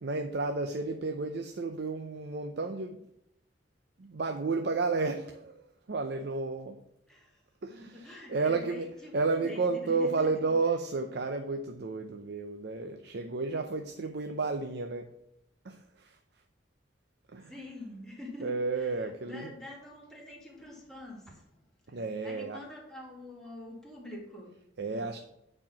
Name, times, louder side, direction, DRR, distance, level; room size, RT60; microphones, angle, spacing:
voice 1, 0.0-3.1 4.0-6.8 7.6-8.9 9.1-15.1 15.6-16.2 17.3-17.5 18.4-19.5 21.9-22.6 24.8-25.2, right 3 dB, 60° right, 6 dB, 0.6 m, -32 dB
voice 2, 7.1-7.4 7.8-10.6 17.4-25.1, left 1 dB, 5° left, -3 dB, 2.0 m, -46 dB
8.8 x 4.4 x 5.8 m, 0.80 s
head